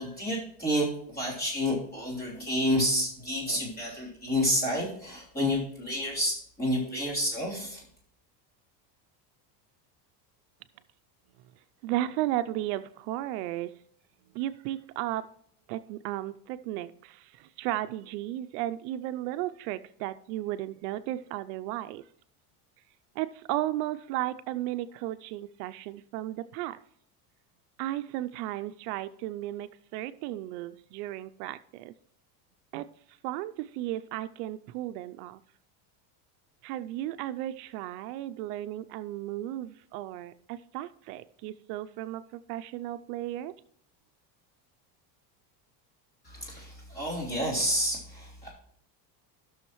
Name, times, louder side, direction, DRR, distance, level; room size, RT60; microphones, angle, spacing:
voice 1, 0.0-7.8 46.2-48.5, equal, 20° left, -4 dB, 3.3 m, -29 dB
voice 2, 11.8-13.7 14.3-15.3 15.7-22.0 23.2-26.8 27.8-31.9 32.7-32.9 33.2-35.4 36.6-43.5, right 14 dB, 70° right, 12 dB, 0.6 m, -34 dB
15.0 x 6.4 x 3.1 m, 0.66 s
cardioid pair, 155°, 49 cm